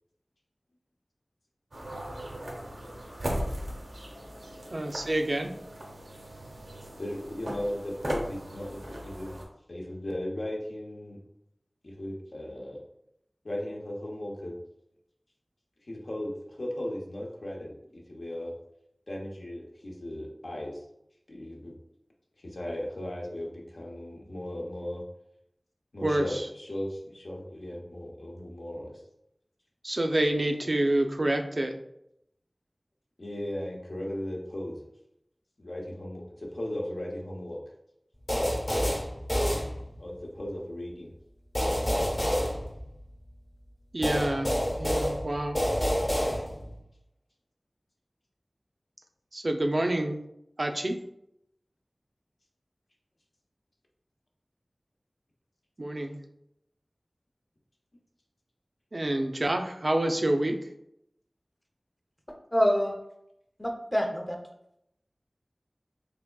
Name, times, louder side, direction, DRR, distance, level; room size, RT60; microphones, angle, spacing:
sound 1, 1.7-9.4, equal, 85° right, 0.7 m, -38 dB
voice 1, 4.7-5.5 26.0-26.5 29.8-31.7 43.9-44.5 44.8-45.6 49.3-50.2 50.6-51.0 55.8-56.2 58.9-60.6, right 1 dB, 55° right, 5 dB, 0.4 m, -27 dB
voice 2, 7.0-9.4 9.7-11.2 11.8-12.8 13.4-14.5 15.8-18.5 19.1-20.8 21.3-21.7 22.4-25.0 25.9-29.0 33.2-34.8 35.6-37.6 40.0-41.1, left 1 dB, 75° left, -2 dB, 0.7 m, -36 dB
sound 2, 38.3-40.2 41.5-43.3 44.0-46.8, equal, 40° left, 0.9 m, -28 dB
voice 3, 62.5-62.9 63.6-64.4, equal, 10° left, 2 dB, 0.6 m, -26 dB
3.4 x 3.3 x 2.3 m, 0.78 s
wide cardioid pair, 55°, 0 cm